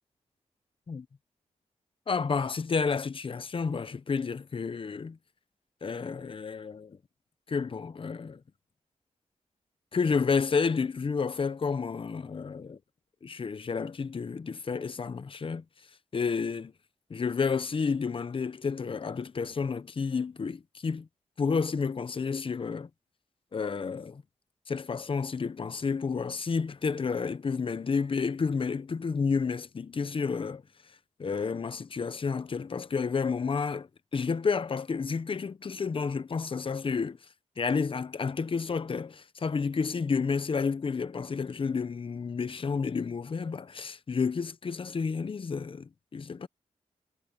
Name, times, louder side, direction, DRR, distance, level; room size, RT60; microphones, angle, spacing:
voice 1, 2.1-5.2 5.8-7.0 7.5-8.4 9.9-12.8 13.2-15.6 16.1-16.7 17.1-21.1 21.4-22.9 23.5-24.2 24.7-30.6 31.2-37.2 37.6-46.5, left 5 dB, 45° left, 0.9 m, -30 dB
wide cardioid pair, 100°, 13 cm